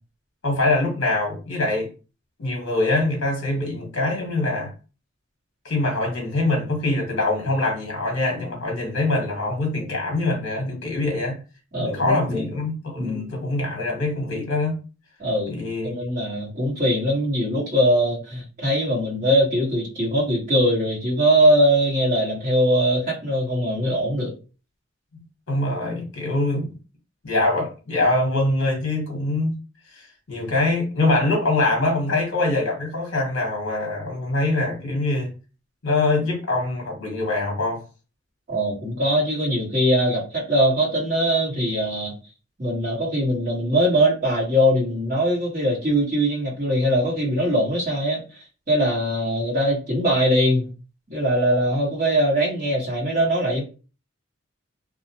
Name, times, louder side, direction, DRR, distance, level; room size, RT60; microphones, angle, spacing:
voice 1, 0.4-1.9 2.4-4.7 5.6-11.4 11.8-14.8 15.5-15.9 25.5-26.8 27.2-29.6 29.9-35.3 35.8-37.8, left 2 dB, 60° left, 0.8 m, -24 dB
voice 2, 11.7-12.5 13.0-13.3 15.2-15.5 15.8-24.3 38.5-42.1 42.6-48.2 48.7-50.7 51.1-53.6, equal, 40° right, 1.2 m, -21 dB
2.4 x 2.0 x 2.7 m
head